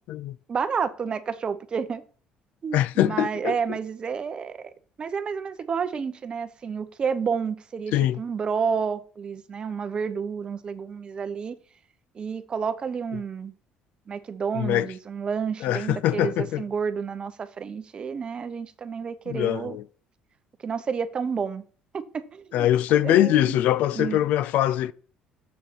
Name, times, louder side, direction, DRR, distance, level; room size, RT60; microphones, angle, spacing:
voice 1, 0.5-2.0 2.6-4.7 5.0-11.6 12.1-13.5 14.1-19.8 20.6-21.6 21.9-23.6 23.9-24.2, right 6 dB, 35° right, 0.8 m, -30 dB
voice 2, 2.7-3.8 7.9-8.2 14.5-14.9 15.6-16.6 19.3-19.8 22.5-24.9, left 12 dB, 75° left, 0.4 m, -23 dB
7.3 x 6.7 x 4.5 m
cardioid pair, 110°, 3 cm